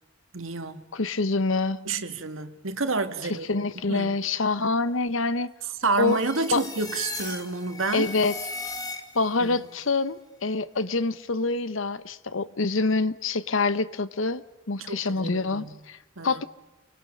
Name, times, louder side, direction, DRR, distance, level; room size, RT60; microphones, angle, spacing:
voice 1, 0.3-0.8 1.9-4.2 5.8-8.1 9.4-9.7 14.8-15.8 16.2-16.4, right 3 dB, 75° right, 1.8 m, -29 dB
voice 2, 0.9-1.9 3.5-5.5 6.0-6.2 6.5-6.6 7.9-8.4 9.1-16.0 16.2-16.4, left 3 dB, 70° left, 1.0 m, -26 dB
sound 1, 6.1-9.4, left 3 dB, 20° left, 2.4 m, -36 dB
30.0 x 24.0 x 6.5 m
head